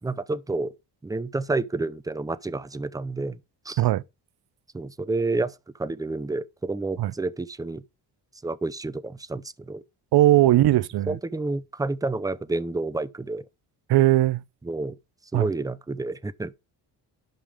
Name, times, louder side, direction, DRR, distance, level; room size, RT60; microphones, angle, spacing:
voice 1, 0.0-0.7 1.0-3.4 3.7-3.8 4.7-7.8 8.4-9.8 11.1-13.4 14.6-15.0 15.3-16.5, right 3 dB, 10° right, 0.5 m, -29 dB
voice 2, 10.1-11.2 13.9-14.4 15.3-15.5, right 15 dB, 65° right, 0.6 m, -19 dB
11.5 x 5.3 x 4.9 m
cardioid pair, 115°, 41 cm